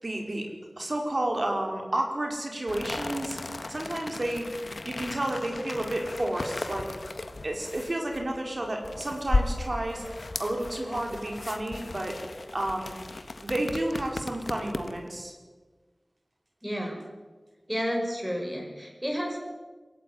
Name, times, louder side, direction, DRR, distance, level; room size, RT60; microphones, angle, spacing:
voice 1, 0.0-0.5 0.8-3.4 3.7-4.5 4.8-6.9 7.4-10.0 10.4-12.2 12.5-12.9 13.4-15.3, right 1 dB, 50° right, 1 dB, 5.3 m, -31 dB
sound 1, 2.7-15.1, left 2 dB, 75° left, 1.7 m, -35 dB
voice 2, 16.6-17.0 17.7-19.4, equal, 10° right, 1 dB, 6.4 m, -31 dB
23.0 x 17.5 x 9.7 m, 1.3 s
wide cardioid pair, 60°, 0 cm